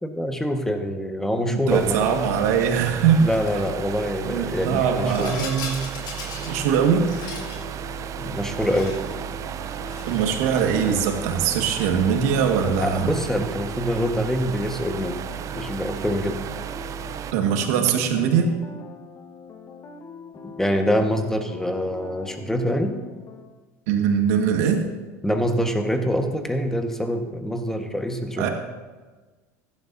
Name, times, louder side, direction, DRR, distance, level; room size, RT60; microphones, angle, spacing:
voice 1, 0.0-2.2 3.2-5.3 8.2-9.0 12.8-15.2 15.5-16.4 20.6-23.0 25.2-28.5, equal, 5° left, 5 dB, 1.4 m, -25 dB
voice 2, 1.5-3.3 4.2-5.9 6.5-7.1 10.1-13.1 17.3-18.5 23.9-24.8 28.4-28.5, right 7 dB, 80° right, 4 dB, 1.7 m, -21 dB
sound 1, 1.7-17.3, right 10 dB, 40° right, 0.5 m, -34 dB
Rattle, 3.3-3.6 4.7-6.6 6.9-7.6 8.5-9.1 9.7-10.4, left 4 dB, 55° left, 3.5 m, -37 dB
sound 2, 6.4-23.4, left 5 dB, 35° left, 1.2 m, -42 dB
15.5 x 11.5 x 2.7 m, 1.3 s
supercardioid pair, 100°, 8 cm